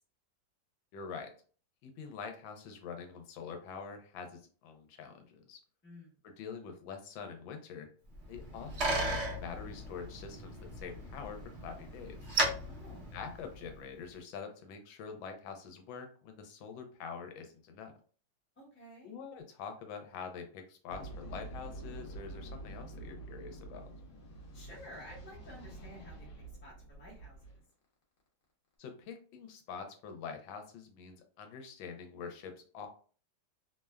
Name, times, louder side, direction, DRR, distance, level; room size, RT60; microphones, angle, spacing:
voice 1, 0.9-1.3 1.8-5.6 6.2-7.9 8.3-12.4 13.1-17.9 19.0-23.9 28.8-32.9, left 6 dB, 85° left, 5 dB, 1.3 m, -45 dB
voice 2, 5.8-6.2 12.7-13.0 18.6-19.1 24.5-27.6, equal, 10° left, -4 dB, 0.5 m, -52 dB
Bicycle, 8.1-13.8, right 1 dB, 65° right, 0.6 m, -36 dB
sound 1, 20.9-27.6, right 2 dB, 60° left, 1.0 m, -47 dB
3.2 x 2.1 x 2.3 m, 0.41 s
omnidirectional pair, 2.1 m